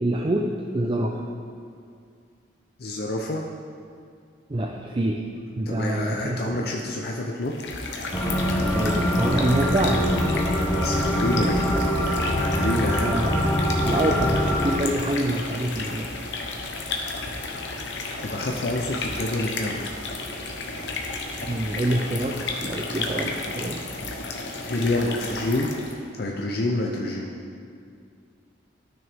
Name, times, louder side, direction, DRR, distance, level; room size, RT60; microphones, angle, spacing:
voice 1, 0.0-1.2 4.5-5.3 5.6-6.7 8.7-10.0 10.5-10.8 12.6-13.4 13.8-16.1 21.4-23.8, right 1 dB, 30° right, 0 dB, 0.4 m, -26 dB
voice 2, 2.8-3.5 5.7-7.5 10.7-11.7 12.0-13.1 18.2-19.9 24.6-25.7 26.2-27.3, left 2 dB, 55° left, 0 dB, 0.6 m, -28 dB
sound 1, 7.4-26.0, left 3 dB, 75° left, 0.9 m, -32 dB
sound 2, 8.1-14.7, equal, 10° left, 0.7 m, -24 dB
12.5 x 6.3 x 3.5 m, 2.3 s
head